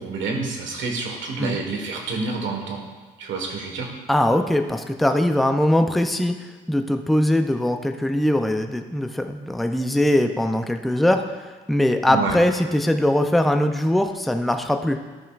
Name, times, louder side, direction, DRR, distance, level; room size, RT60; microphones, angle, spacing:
voice 1, 0.0-2.8 3.2-3.9 12.1-12.4, right 4 dB, 75° right, 2 dB, 1.5 m, -28 dB
voice 2, 4.1-6.4 6.7-15.0, left 1 dB, ahead, 6 dB, 0.5 m, -21 dB
12.0 x 5.6 x 2.5 m, 1.3 s
cardioid pair, 90°, 20 cm